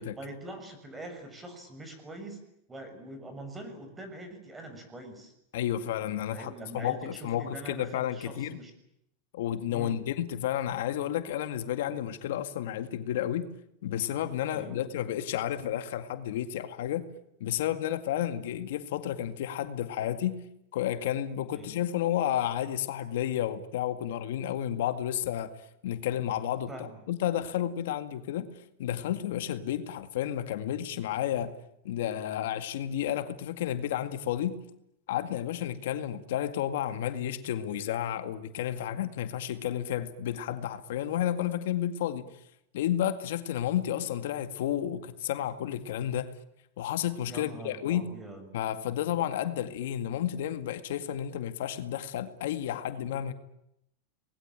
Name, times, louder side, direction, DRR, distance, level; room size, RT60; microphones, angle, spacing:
voice 1, 0.1-2.4 2.7-5.3 6.3-8.7 9.7-10.0 14.5-14.8 21.5-21.8 26.7-27.0 47.3-48.5, right 1 dB, 15° right, 6.5 m, -43 dB
voice 2, 5.5-8.6 9.3-13.5 13.8-17.1 17.4-20.4 20.7-25.5 25.8-28.5 28.8-31.6 31.8-34.6 35.1-42.3 42.7-46.3 46.8-48.1 48.5-53.3, left 11 dB, 75° left, 2.1 m, -31 dB
27.5 x 20.5 x 9.0 m
supercardioid pair, 135°, 0 cm